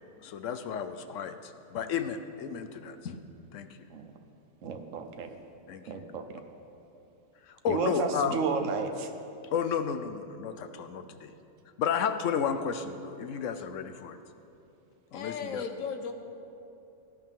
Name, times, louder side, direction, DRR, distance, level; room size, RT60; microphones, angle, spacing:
voice 1, 0.2-3.2 3.5-3.9 5.7-6.0 7.4-8.4 9.5-11.3 11.8-14.2 15.1-15.6, left 7 dB, 75° left, 10 dB, 1.0 m, -32 dB
voice 2, 4.6-5.3 5.9-6.2 7.7-9.1, right 5 dB, 75° right, 6 dB, 1.2 m, -32 dB
voice 3, 15.1-16.1, left 6 dB, 90° left, 7 dB, 1.3 m, -35 dB
18.0 x 11.0 x 3.7 m, 2.7 s
omnidirectional pair, 1.4 m